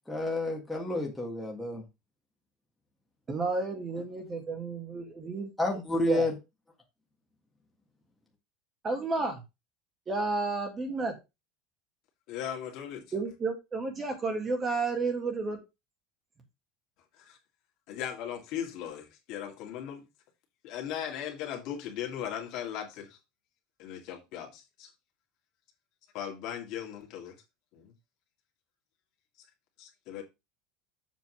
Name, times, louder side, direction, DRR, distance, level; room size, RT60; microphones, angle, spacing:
voice 1, 0.1-1.8 5.6-6.3, left 2 dB, 5° left, 1.7 m, -30 dB
voice 2, 3.3-5.5 6.1-6.3 8.8-9.4 10.1-11.2 13.1-15.6, right 3 dB, 20° right, 1.7 m, -31 dB
voice 3, 12.3-13.1 17.2-17.4 17.9-20.1 20.6-23.2 23.8-24.9 26.1-27.4 27.7-27.9 29.8-30.2, left 9 dB, 50° left, 2.2 m, -38 dB
7.4 x 4.0 x 6.2 m
cardioid pair, 170°, 0 cm